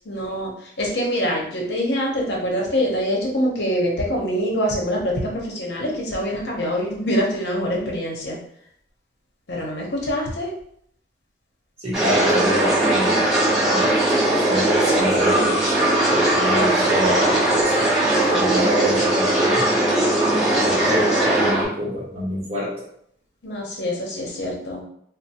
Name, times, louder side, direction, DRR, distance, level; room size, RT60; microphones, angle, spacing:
voice 1, 0.1-0.5 0.8-8.4 9.5-10.5 23.4-24.8, equal, 65° left, -2 dB, 0.7 m, -24 dB
voice 2, 11.8-15.7 16.1-17.9 18.2-22.9, equal, 35° right, -5 dB, 0.9 m, -27 dB
sound 1, 11.9-21.6, right 1 dB, ahead, 0.7 m, -19 dB
3.0 x 2.0 x 2.7 m, 0.69 s
head